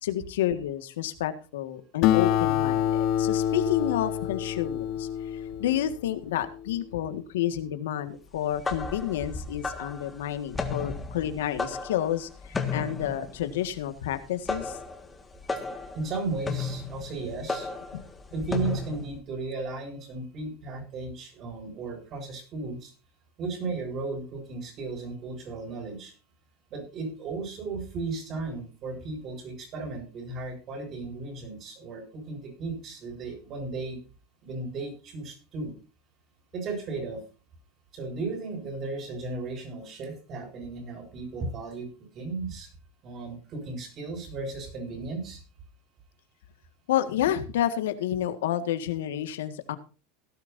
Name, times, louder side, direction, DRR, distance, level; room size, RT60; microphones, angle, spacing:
voice 1, 0.0-5.1 5.3-14.8 17.9-18.0 46.9-49.8, left 11 dB, 90° left, 10 dB, 1.7 m, -30 dB
Acoustic guitar, 2.0-6.9, left 11 dB, 50° left, 1.2 m, -27 dB
sound 1, 8.4-19.1, left 4 dB, 15° left, 1.7 m, -34 dB
voice 2, 15.9-17.7 18.3-22.9 23.4-26.1 26.7-34.0 34.4-35.7 36.5-37.2 37.9-41.9 42.2-42.7 43.0-45.4, right 3 dB, 35° right, 2 dB, 7.0 m, -35 dB
17.5 x 12.0 x 2.7 m, 0.35 s
supercardioid pair, 140°, 0 cm